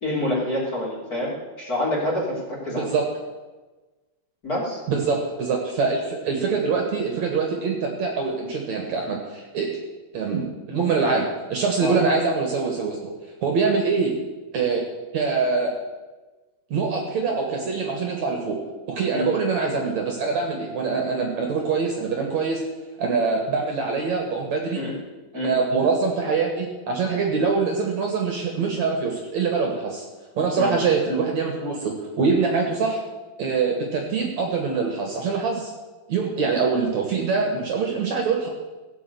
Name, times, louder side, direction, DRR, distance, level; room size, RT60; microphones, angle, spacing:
voice 1, 0.0-1.3 1.6-2.9 4.4-4.8 11.8-11.9 19.1-19.3 24.7-24.9 25.3-25.5 30.5-30.7, left 1 dB, 25° left, -5 dB, 3.3 m, -27 dB
voice 2, 2.7-3.0 4.9-9.8 10.1-13.1 13.4-14.1 14.5-14.9 15.1-15.8 16.7-18.6 18.9-22.6 23.0-24.8 25.3-30.0 30.4-33.0 33.4-35.7 36.1-38.5, right 4 dB, 55° right, 1 dB, 2.5 m, -24 dB
17.0 x 6.2 x 7.9 m, 1.2 s
omnidirectional pair, 4.2 m